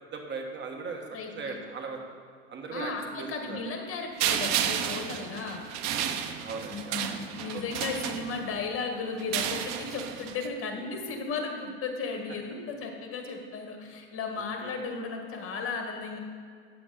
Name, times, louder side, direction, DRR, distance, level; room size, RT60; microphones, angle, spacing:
voice 1, 0.1-1.0 1.3-2.0 2.5-2.9 3.2-3.6 5.8-7.1 7.5-7.6 10.8-10.9 14.6-14.7, right 4 dB, 35° right, 2 dB, 1.4 m, -38 dB
voice 2, 1.1-1.6 2.7-5.6 6.7-16.2, left 4 dB, 45° left, 3 dB, 1.8 m, -35 dB
sound 1, 4.2-8.7 9.2-10.5, right 9 dB, 60° right, 0.8 m, -32 dB
9.2 x 7.0 x 5.1 m, 2.2 s
supercardioid pair, 105°, 31 cm